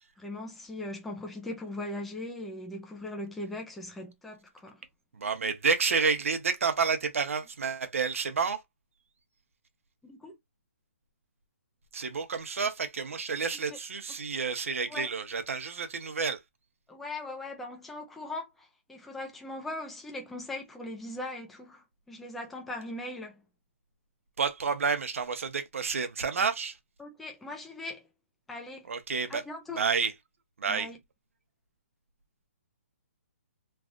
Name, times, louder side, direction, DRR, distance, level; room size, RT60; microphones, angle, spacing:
voice 1, 0.2-4.8 10.0-10.4 13.7-13.8 14.9-15.1 16.9-23.4 27.0-28.1 28.5-28.9 29.3-29.8 30.7-31.0, left 2 dB, ahead, 0.3 m, -40 dB
voice 2, 5.2-8.6 11.9-16.4 24.4-26.8 28.9-29.4 29.8-30.1 30.6-30.9, right 5 dB, 65° right, 0.9 m, -29 dB
3.2 x 2.4 x 2.5 m
hypercardioid pair, 175°, 8 cm